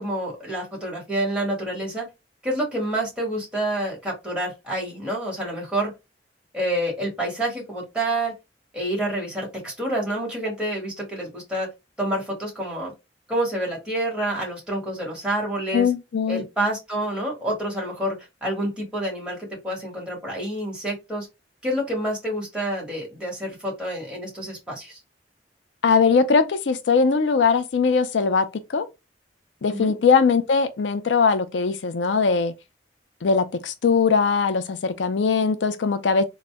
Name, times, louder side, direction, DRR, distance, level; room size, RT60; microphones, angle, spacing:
voice 1, 0.0-2.1 2.4-5.9 6.5-8.3 8.7-11.7 12.0-12.9 13.3-15.9 16.3-21.3 21.6-25.0 29.7-29.9, right 1 dB, 5° right, 1.6 m, -28 dB
voice 2, 15.7-16.4 25.8-28.9 29.6-32.5 33.2-36.2, left 5 dB, 85° left, 0.5 m, -20 dB
3.9 x 2.1 x 3.4 m
head